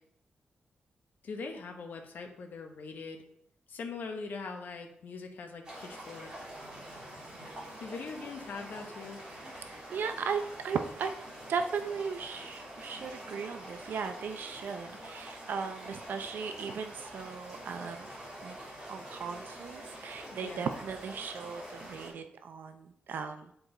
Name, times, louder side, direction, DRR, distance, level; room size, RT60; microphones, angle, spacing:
voice 1, 1.2-3.2 3.7-6.3 7.8-9.2 20.3-20.8, left 4 dB, 70° left, 3 dB, 1.0 m, -42 dB
sound 1, 5.6-22.1, right 1 dB, 25° right, 2.9 m, -46 dB
voice 2, 9.7-11.1 11.5-18.1 18.4-18.6 18.9-23.5, right 6 dB, 75° right, 7 dB, 0.5 m, -37 dB
8.7 x 4.7 x 3.8 m, 0.71 s
wide cardioid pair, 150°, 3 cm